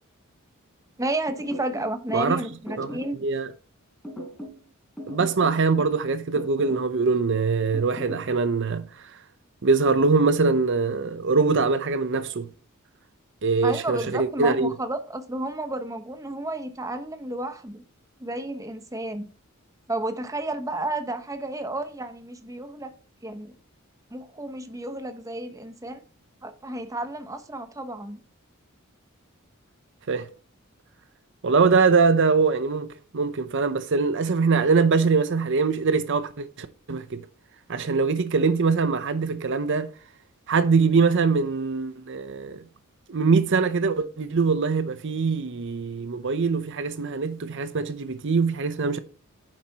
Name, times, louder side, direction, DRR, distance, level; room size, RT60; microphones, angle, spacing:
voice 1, 1.0-3.2 13.6-17.8 18.2-19.3 19.9-22.9 23.2-23.6 24.1-26.0 26.4-28.2, right 2 dB, 15° right, 1.0 m, -31 dB
sound 1, 1.3-2.3 2.7-3.2 4.0-4.6 5.0-6.0 6.3-6.9 7.7-8.3, equal, 5° left, 3.8 m, -38 dB
voice 2, 3.2-3.5 5.1-9.1 9.6-12.5 13.4-14.7 30.1-30.3 31.4-32.9 33.1-37.2 37.7-39.9 40.5-42.6 43.1-49.0, right 4 dB, 60° right, 0.7 m, -23 dB
9.9 x 7.3 x 2.9 m
head